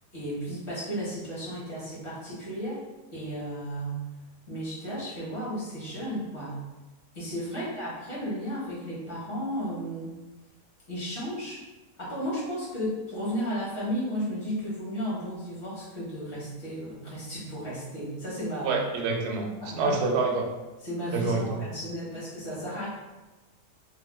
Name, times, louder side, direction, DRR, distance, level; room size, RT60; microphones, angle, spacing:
voice 1, 0.1-2.8 3.1-4.0 4.5-6.6 7.1-10.2 10.9-11.6 12.0-18.8 19.6-19.9 20.8-22.9, equal, 45° left, -9 dB, 1.6 m, -34 dB
voice 2, 18.6-20.4 21.1-21.6, right 3 dB, 75° right, 1 dB, 1.1 m, -27 dB
3.5 x 2.8 x 2.2 m, 1.1 s
omnidirectional pair, 1.7 m